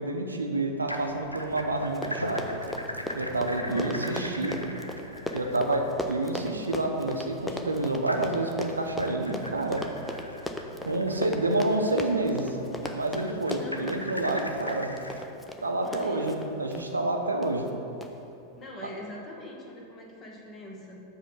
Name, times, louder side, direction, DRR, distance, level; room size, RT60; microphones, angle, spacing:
voice 1, 0.0-2.6 3.1-4.6 5.3-9.8 10.8-12.6 12.9-15.0 15.6-17.7, right 2 dB, 80° right, 3 dB, 0.6 m, -28 dB
sound 1, 0.8-15.2, equal, 90° left, 0.4 m, -40 dB
Run, 1.6-1.7 1.9-16.9 17.4-17.7 18.0-18.1, left 1 dB, 5° left, 0.5 m, -37 dB
voice 2, 3.6-4.8 13.6-14.0 15.8-16.4 18.6-21.0, left 1 dB, 25° left, -1 dB, 1.2 m, -42 dB
7.3 x 3.6 x 6.3 m, 2.8 s
figure-of-eight pair, 90°, 0 cm